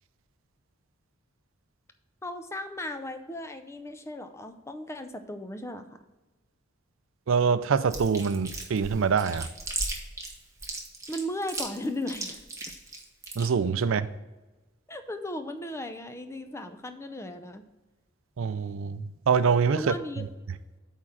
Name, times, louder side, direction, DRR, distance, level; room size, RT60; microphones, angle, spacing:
voice 1, 2.2-6.1 11.1-12.4 14.9-17.6 19.8-20.3, left 1 dB, 15° left, 0.5 m, -36 dB
voice 2, 7.3-9.5 13.4-14.1 18.4-20.3, right 6 dB, 75° right, 0.4 m, -25 dB
Chewing mastication, 7.9-13.5, right 3 dB, 15° right, 1.1 m, -36 dB
8.6 x 3.7 x 6.4 m
head